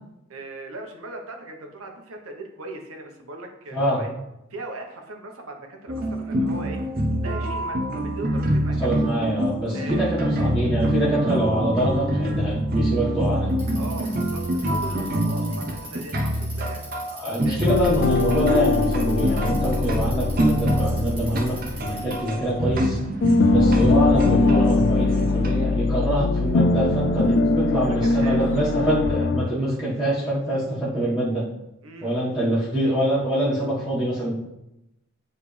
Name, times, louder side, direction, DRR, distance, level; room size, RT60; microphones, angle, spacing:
voice 1, 0.3-4.1 4.5-6.8 7.2-9.0 9.7-10.2 13.8-17.0 17.4-17.7 22.0-22.2 23.2-23.4 27.7-28.4 31.8-32.1, right 2 dB, 85° right, 3 dB, 1.1 m, -39 dB
voice 2, 3.7-4.0 8.8-13.5 17.1-23.0 23.5-31.4 32.0-34.3, right 1 dB, ahead, -11 dB, 1.4 m, -25 dB
sound 1, 5.9-25.5, right 1 dB, 45° right, 0.7 m, -26 dB
Bicycle, 13.5-22.3, right 1 dB, 25° right, 2.0 m, -41 dB
sound 2, 17.7-22.9 23.2-29.5, left 3 dB, 55° left, 0.3 m, -22 dB
9.2 x 3.3 x 3.3 m, 0.88 s
head